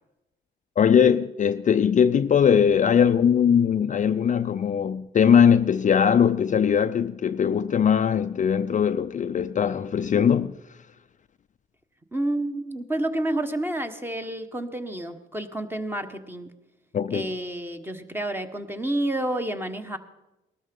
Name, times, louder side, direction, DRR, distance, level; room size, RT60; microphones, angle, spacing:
voice 1, 0.8-10.5 16.9-17.3, left 7 dB, 40° left, 0.4 m, -20 dB
voice 2, 12.1-16.5 17.1-20.0, right 1 dB, 10° right, 1.3 m, -29 dB
19.0 x 12.5 x 5.4 m
cardioid pair, 90°, 20 cm